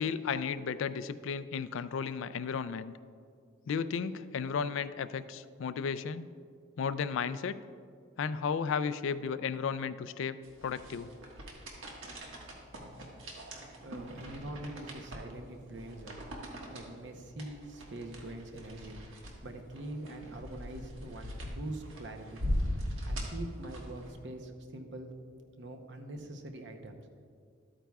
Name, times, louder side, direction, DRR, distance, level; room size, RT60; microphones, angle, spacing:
voice 1, 0.0-2.9 3.7-6.3 6.8-7.6 8.2-10.4 10.6-11.1, left 6 dB, 80° left, 14 dB, 0.3 m, -34 dB
sound 1, 10.4-24.1, equal, 85° right, 1.6 m, -40 dB
voice 2, 13.8-16.1 16.7-22.4 23.1-25.1 25.6-27.0, right 1 dB, 65° right, 5 dB, 0.8 m, -44 dB
13.0 x 8.8 x 2.3 m, 2.2 s
head